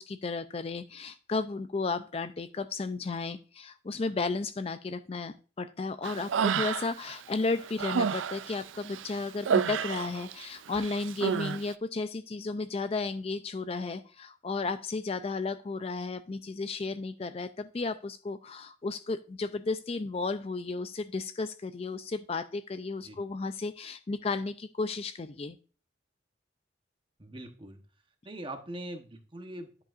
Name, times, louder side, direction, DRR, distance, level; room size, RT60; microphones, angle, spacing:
voice 1, 0.0-25.6, left 3 dB, 30° left, 11 dB, 0.4 m, -33 dB
Human voice, 6.0-7.1 7.5-10.4 10.7-11.6, right 7 dB, 90° right, 0.4 m, -30 dB
voice 2, 27.2-27.8 28.2-29.8, right 1 dB, 25° right, 6 dB, 1.0 m, -42 dB
10.5 x 7.6 x 2.5 m, 0.36 s
head